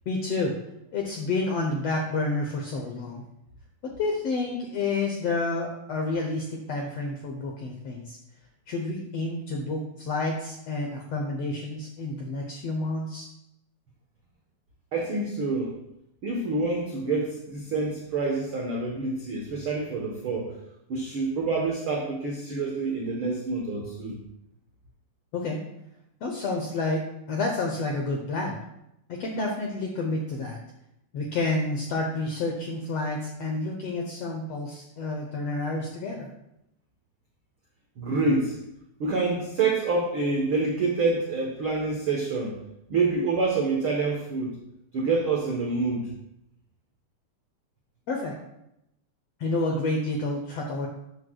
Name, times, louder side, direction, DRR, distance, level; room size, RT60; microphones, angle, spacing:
voice 1, 0.1-0.5 0.9-3.2 3.8-8.2 8.7-13.3 25.3-25.6 26.2-28.6 29.1-30.6 31.1-36.3 48.1-48.3 49.4-50.9, left 2 dB, 85° left, 1 dB, 1.3 m, -29 dB
voice 2, 14.9-15.8 16.2-20.6 20.9-24.2 38.0-38.6 39.0-42.6 42.9-44.6 44.9-46.2, right 3 dB, 80° right, -1 dB, 1.1 m, -27 dB
12.5 x 8.1 x 2.3 m, 0.82 s
omnidirectional pair, 4.1 m